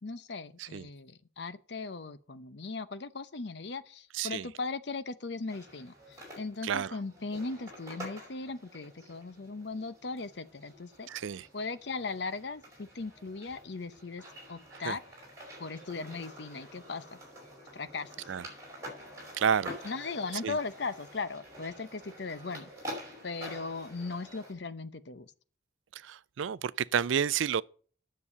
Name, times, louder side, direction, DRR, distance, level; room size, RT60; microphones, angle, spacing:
voice 1, 0.0-11.1 11.5-14.2 14.5-15.0 15.6-17.2 17.7-18.3 19.8-22.9 23.2-25.3, left 3 dB, 60° left, 0.8 m, -38 dB
voice 2, 4.1-4.5 6.6-6.9 11.1-11.5 14.9-15.0 18.3-18.4 19.4-19.7 20.4-20.5 26.1-27.6, right 7 dB, 80° right, 0.4 m, -30 dB
sound 1, 5.5-24.5, equal, 15° right, 5.1 m, -48 dB
9.9 x 6.9 x 8.2 m
head